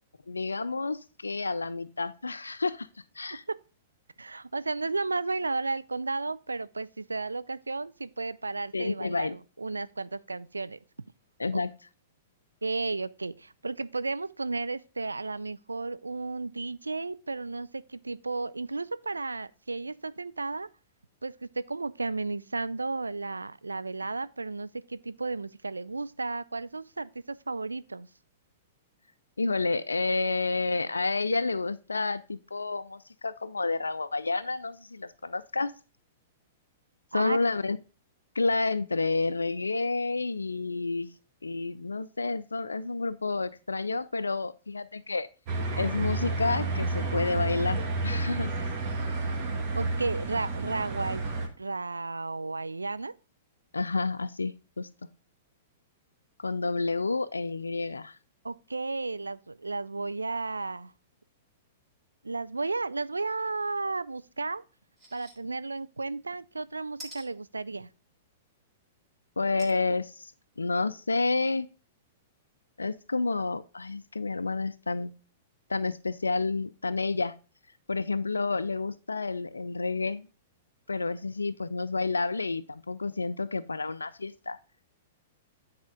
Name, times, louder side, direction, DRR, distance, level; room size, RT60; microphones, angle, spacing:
voice 1, 0.3-2.9 3.2-3.4 8.7-9.4 11.4-11.7 29.4-35.7 37.1-37.8 38.4-41.1 41.4-45.3 45.8-48.5 53.7-54.9 56.4-58.2 69.4-70.3 70.6-71.7 72.8-75.1 75.7-77.3 77.9-80.3 80.9-84.6, left 3 dB, 80° left, 0.3 m, -30 dB
voice 2, 4.2-10.8 11.5-11.6 12.6-20.7 21.2-28.1 37.1-37.4 49.7-51.2 51.6-53.1 58.4-60.9 62.2-64.6 65.1-67.9, right 3 dB, 80° right, 0.3 m, -33 dB
sound 1, 45.5-51.5, right 2 dB, 40° right, 1.5 m, -30 dB
sound 2, 65.0-65.3 65.8-65.9 67.0-67.3 69.6-69.8 70.4-70.5 70.7-70.8, right 1 dB, 20° right, 2.6 m, -46 dB
9.4 x 4.2 x 3.6 m
figure-of-eight pair, 105°, 0 cm